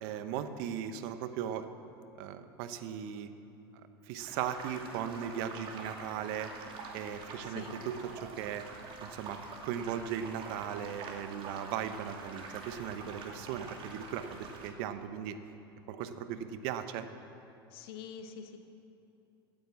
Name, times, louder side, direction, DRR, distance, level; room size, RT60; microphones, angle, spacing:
voice 1, 0.0-1.7 2.2-3.3 4.1-6.5 6.9-8.7 9.0-15.4 15.9-17.1, right 9 dB, 60° right, 10 dB, 0.9 m, -38 dB
sound 1, 4.2-14.7, right 3 dB, 45° right, 2.4 m, -46 dB
voice 2, 7.4-7.7 17.7-18.6, left 7 dB, 70° left, 7 dB, 1.3 m, -45 dB
15.5 x 8.9 x 7.2 m, 2.8 s
hypercardioid pair, 90°, 13 cm